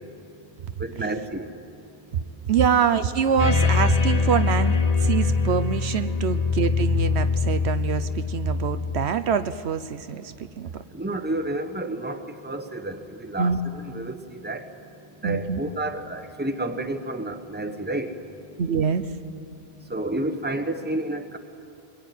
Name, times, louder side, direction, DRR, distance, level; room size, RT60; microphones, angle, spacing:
voice 1, 0.8-1.5 10.9-14.7 15.2-18.1 19.9-21.4, right 2 dB, 10° right, 7 dB, 1.2 m, -30 dB
voice 2, 2.5-10.7 13.4-13.6 15.2-15.6 18.6-19.1, right 7 dB, 75° right, 11 dB, 1.1 m, -25 dB
sound 1, 3.4-9.1, left 4 dB, 40° left, 0.9 m, -23 dB
23.5 x 22.0 x 9.3 m, 2.7 s
omnidirectional pair, 1.1 m